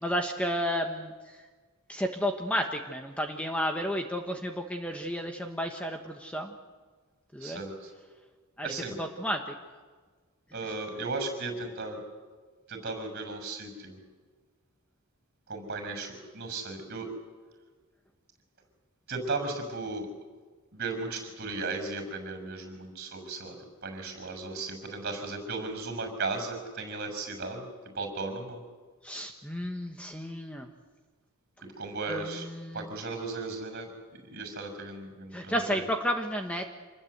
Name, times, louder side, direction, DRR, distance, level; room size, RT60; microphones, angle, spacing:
voice 1, 0.0-1.1 1.9-6.5 7.3-7.6 8.6-9.5 29.0-30.7 32.1-32.9 35.3-36.7, equal, 5° left, 3 dB, 1.2 m, -32 dB
voice 2, 7.4-7.9 8.6-9.0 10.5-12.0 12.7-14.0 15.5-17.1 19.1-20.1 20.7-23.6 23.8-27.7 27.9-28.6 31.6-32.5 32.7-35.8, right 3 dB, 45° right, 6 dB, 6.2 m, -36 dB
27.0 x 20.5 x 8.0 m, 1.4 s
head